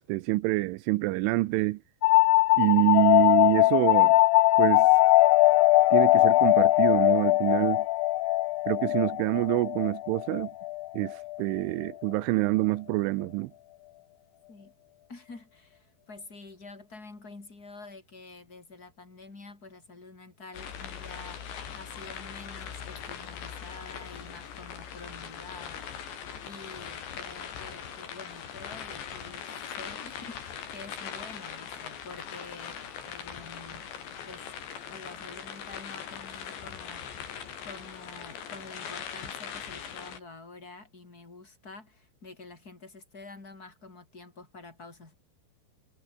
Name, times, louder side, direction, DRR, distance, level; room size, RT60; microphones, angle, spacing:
voice 1, 0.0-1.8 2.6-4.1 4.6-4.9 5.9-7.9 8.7-10.5 10.9-13.5, right 20 dB, 85° right, 3.2 m, -26 dB
sound 1, 2.0-11.4, left 18 dB, 90° left, 2.3 m, -21 dB
voice 2, 15.1-26.1 26.4-32.8 33.1-33.9 34.3-34.5 34.9-37.3 37.6-45.1, left 3 dB, 20° left, 3.9 m, -48 dB
raindrops.umbrella, 20.5-40.2, left 8 dB, 65° left, 5.7 m, -41 dB
omnidirectional pair, 5.7 m